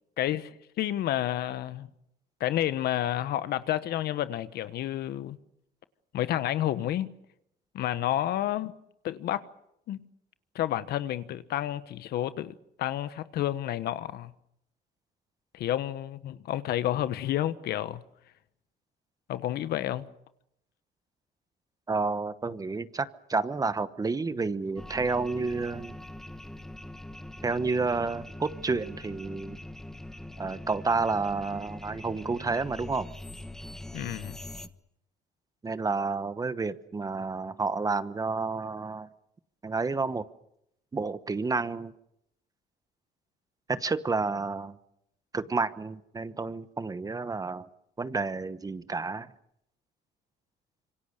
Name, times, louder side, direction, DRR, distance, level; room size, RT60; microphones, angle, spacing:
voice 1, 0.2-1.9 2.4-5.4 6.1-7.1 7.7-8.7 9.0-9.5 9.9-10.0 10.5-14.3 15.5-18.0 19.3-20.1 33.9-34.4, left 12 dB, 70° left, 1.3 m, -30 dB
voice 2, 21.9-25.9 27.4-29.6 30.4-33.1 35.6-39.1 39.6-40.2 40.9-41.9 43.7-44.8 45.3-47.7 48.0-49.3, right 4 dB, 20° right, 1.1 m, -30 dB
sound 1, 24.8-34.7, left 1 dB, 5° left, 1.3 m, -43 dB
26.5 x 24.5 x 6.7 m
cardioid pair, 110°, 17 cm